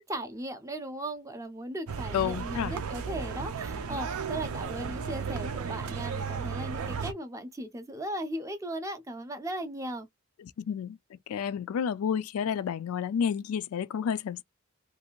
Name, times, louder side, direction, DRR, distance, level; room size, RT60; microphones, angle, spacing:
voice 1, 0.1-10.1, right 1 dB, 15° right, 0.4 m, -37 dB
sound 1, 1.9-7.1, right 5 dB, 85° right, 0.5 m, -34 dB
voice 2, 2.1-2.7 10.6-11.0 11.3-14.4, left 7 dB, 80° left, 0.3 m, -30 dB
2.6 x 2.4 x 2.9 m
head